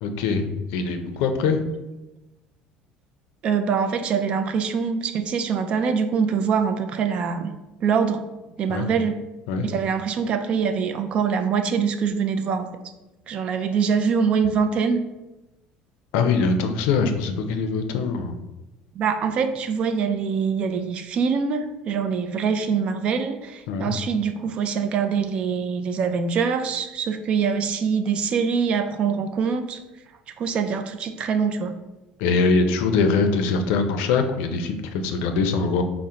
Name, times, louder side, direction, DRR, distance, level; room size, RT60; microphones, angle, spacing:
voice 1, 0.0-1.6 8.7-8.9 9.5-9.7 16.1-18.3 23.7-23.9 32.2-35.8, left 4 dB, 85° left, 6 dB, 0.4 m, -23 dB
voice 2, 3.4-7.5 7.8-8.2 8.6-9.2 9.6-12.7 13.3-15.0 19.0-29.8 30.4-31.7, right 6 dB, 40° right, 8 dB, 0.3 m, -24 dB
4.3 x 2.1 x 3.7 m, 1.0 s
cardioid pair, 145°, 3 cm